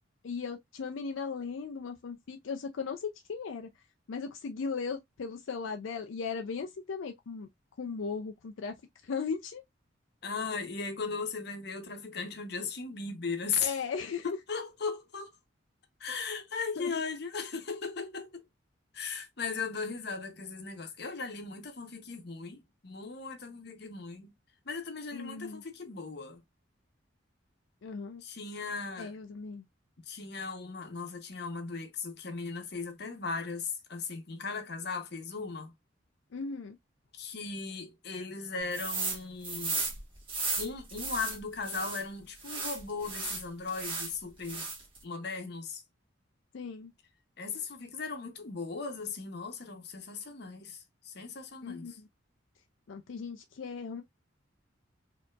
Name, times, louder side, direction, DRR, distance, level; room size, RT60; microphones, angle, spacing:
voice 1, 0.2-3.7 4.1-7.5 7.8-8.7 9.0-9.6 13.6-14.4 16.8-16.9 25.1-25.6 27.8-28.2 29.0-29.6 36.3-36.8 46.5-46.9 51.6-52.1 52.9-54.0, left 5 dB, 85° left, 0.4 m, -37 dB
voice 2, 10.2-13.8 14.5-15.3 16.0-18.4 18.9-24.3 24.6-26.4 28.2-29.1 30.1-35.7 37.1-39.9 40.6-44.7 45.0-45.8 47.4-52.0, left 4 dB, 55° left, 0.9 m, -37 dB
sound 1, 38.7-39.2 39.4-42.0 42.4-44.1 44.4-45.0, right 4 dB, 25° right, 1.4 m, -35 dB
4.4 x 2.8 x 2.4 m
head